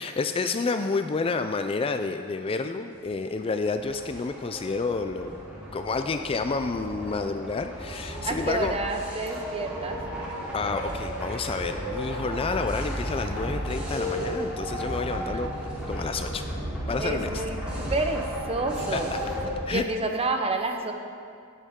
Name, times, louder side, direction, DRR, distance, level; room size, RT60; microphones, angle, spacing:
voice 1, 0.0-5.4 5.7-8.8 10.5-15.5 15.9-16.4 16.9-17.4 18.9-19.2 19.7-19.8, left 4 dB, 25° left, 8 dB, 0.4 m, -29 dB
sound 1, 3.4-19.5, equal, 5° right, 3.2 m, -34 dB
voice 2, 8.2-10.0 15.1-15.7 17.0-17.6 17.9-19.1 19.4-20.9, right 2 dB, 30° right, 4 dB, 0.8 m, -29 dB
18.0 x 8.3 x 3.7 m, 2.3 s
head